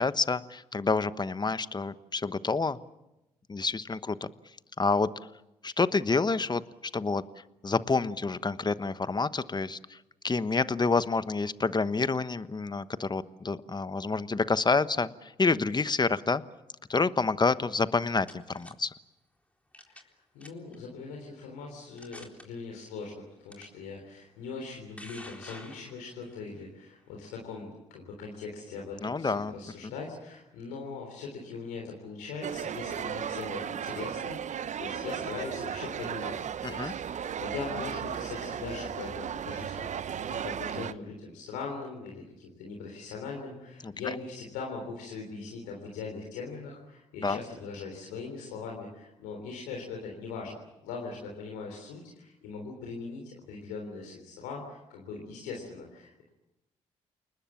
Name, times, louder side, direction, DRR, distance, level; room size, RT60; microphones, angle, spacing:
voice 1, 0.0-2.8 3.5-4.3 4.8-5.1 5.6-7.2 7.6-10.0 10.2-16.4 16.9-18.9 29.0-29.5 29.8-29.9 36.6-36.9 43.8-44.2 47.2-47.4, left 4 dB, 30° left, 14 dB, 1.1 m, -28 dB
sound 1, 18.1-18.7 19.7-20.1 20.4-20.8 21.4-21.5 22.0-22.4 23.5-23.6 24.6-26.3, left 1 dB, 10° left, 3.9 m, -48 dB
voice 2, 20.3-36.3 36.7-50.5 50.8-56.3, left 4 dB, 85° left, 0 dB, 3.5 m, -41 dB
sound 2, 32.4-40.9, right 8 dB, 55° right, 0.8 m, -35 dB
29.0 x 20.0 x 7.3 m, 0.93 s
hypercardioid pair, 45°, 15 cm